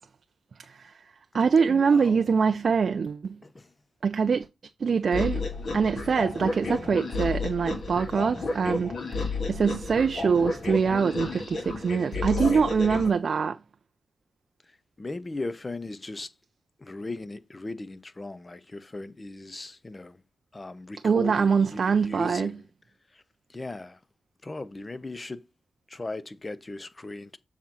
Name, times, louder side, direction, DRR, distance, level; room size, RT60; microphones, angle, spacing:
voice 1, 0.6-0.9 1.3-3.4 4.0-4.5 4.8-5.4 5.7-8.9 9.5-13.6 21.0-22.6, right 5 dB, 60° right, 0.4 m, -24 dB
voice 2, 1.7-2.3 3.4-3.7 15.0-16.3 16.8-20.2 20.5-22.6 23.1-23.2 23.5-24.0 24.4-25.4 25.9-27.4, left 2 dB, 30° left, 0.6 m, -37 dB
sound 1, 5.1-13.1, left 3 dB, 60° left, 1.6 m, -32 dB
7.3 x 2.9 x 5.6 m
cardioid pair, 70°, 0 cm